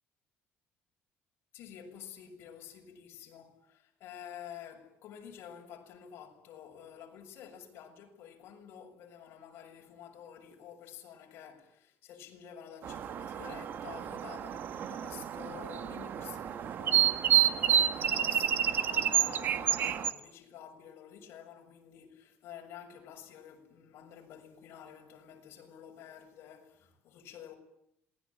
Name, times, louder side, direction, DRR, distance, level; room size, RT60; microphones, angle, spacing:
voice 1, 1.5-27.5, left 9 dB, 65° left, 7.1 m, -50 dB
sound 1, 12.8-20.1, right 10 dB, 50° right, 1.6 m, -29 dB
27.5 x 19.5 x 9.1 m
cardioid pair, 150°, 4 cm